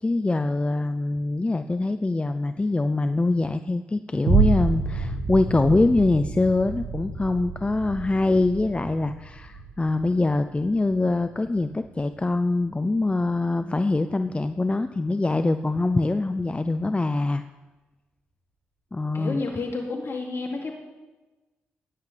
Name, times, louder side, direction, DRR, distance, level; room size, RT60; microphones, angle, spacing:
voice 1, 0.0-17.4 18.9-19.4, left 2 dB, 20° left, 9 dB, 0.5 m, -24 dB
sound 1, 4.3-12.8 13.3-13.4, right 4 dB, 80° right, 2.0 m, -29 dB
voice 2, 19.1-20.7, left 3 dB, 55° left, 1 dB, 2.6 m, -30 dB
15.5 x 10.5 x 3.4 m, 1.2 s
hypercardioid pair, 40°, 5 cm